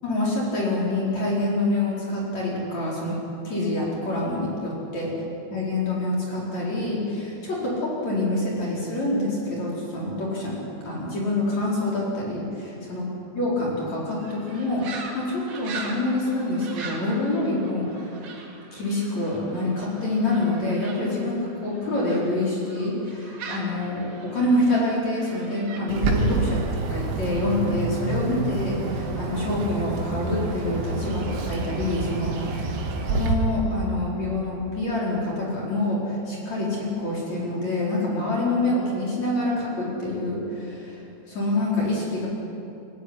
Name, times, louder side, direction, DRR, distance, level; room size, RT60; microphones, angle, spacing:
voice 1, 0.0-3.2 3.4-5.1 5.5-13.1 13.4-18.1 18.7-32.4 33.1-41.0 41.3-42.3, left 2 dB, 35° left, -5 dB, 5.2 m, -26 dB
sound 1, 14.2-22.3 22.7-25.8, right 4 dB, 50° right, 4.0 m, -41 dB
Bird, 25.9-33.3, right 3 dB, 85° right, 4.7 m, -28 dB
24.0 x 15.0 x 9.9 m, 2.7 s
omnidirectional pair, 5.7 m